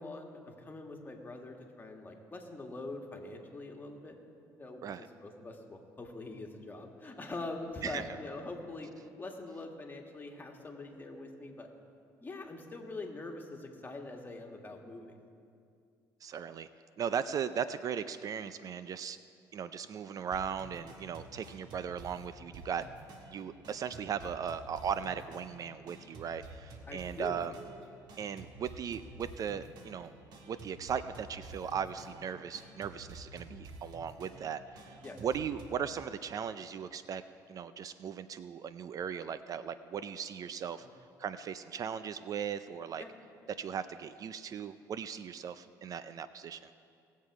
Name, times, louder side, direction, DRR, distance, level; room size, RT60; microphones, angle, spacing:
voice 1, 0.0-4.2 4.6-4.8 5.2-8.9 9.2-11.7 12.2-15.2 26.9-27.4 35.0-35.2 43.0-43.1, left 2 dB, 25° left, 2 dB, 1.8 m, -43 dB
voice 2, 16.2-16.7 17.0-19.2 19.5-22.8 23.3-27.5 28.2-30.1 30.5-37.2 37.5-40.9 41.2-43.0 43.6-46.7, right 7 dB, 45° right, 13 dB, 0.4 m, -38 dB
sound 1, 20.3-35.9, right 2 dB, 65° right, 1.6 m, -51 dB
18.5 x 7.5 x 4.8 m, 2.4 s
supercardioid pair, 75°, 8 cm